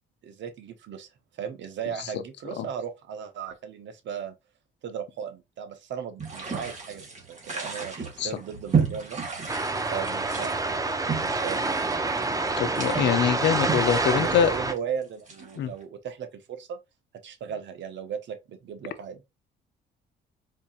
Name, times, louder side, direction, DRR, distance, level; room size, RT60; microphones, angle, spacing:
voice 1, 0.2-1.1 1.4-4.3 4.8-9.2 9.9-11.6 14.1-16.8 17.2-19.2, right 8 dB, 65° right, 0.9 m, -36 dB
sound 1, 6.2-15.8, right 6 dB, 35° right, 1.6 m, -33 dB
sound 2, 9.5-14.7, right 3 dB, 15° right, 0.6 m, -27 dB
voice 2, 12.6-14.5 15.6-15.7, left 8 dB, 65° left, 0.6 m, -24 dB
4.4 x 2.7 x 2.4 m
cardioid pair, 90°, 20 cm